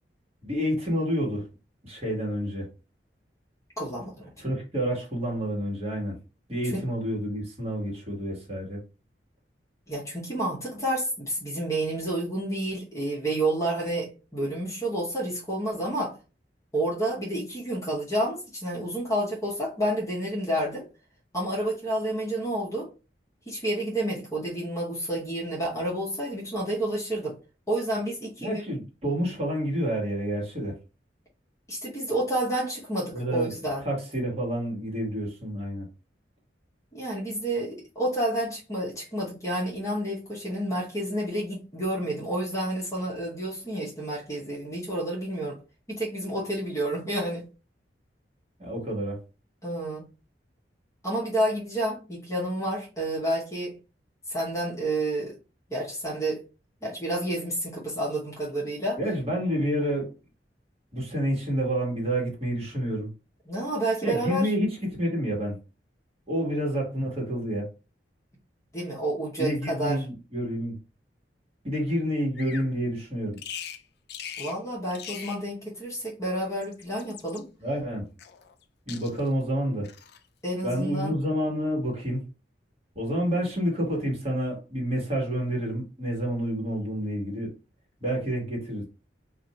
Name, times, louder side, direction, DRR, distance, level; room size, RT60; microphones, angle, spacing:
voice 1, 0.4-1.5 1.8-2.7 4.4-6.2 6.5-8.8 28.4-30.7 33.1-33.5 33.8-35.9 48.6-49.2 59.0-60.1 60.9-63.1 64.0-65.6 66.3-67.7 69.4-70.8 71.6-73.4 77.6-78.1 78.9-79.9 80.6-82.2 82.9-87.5 88.0-88.8, equal, 35° right, 1.5 m, -29 dB
voice 2, 3.8-4.3 6.6-6.8 9.9-16.1 16.7-20.8 21.3-22.9 23.5-27.4 27.7-28.6 31.7-33.8 36.9-45.6 45.9-47.5 49.6-50.0 51.0-53.7 54.3-55.4 55.7-56.4 56.8-59.0 63.5-64.5 68.7-70.0 74.4-77.5 80.4-81.1, right 1 dB, 20° left, 1.0 m, -29 dB
Bird vocalization bird call bird song, 72.4-72.7 73.4-73.8 74.1-74.6 74.9-75.4 76.4-77.4 78.2-78.6 78.9-79.4 79.8-80.2, left 8 dB, 65° left, 0.4 m, -41 dB
2.6 x 2.5 x 4.1 m
head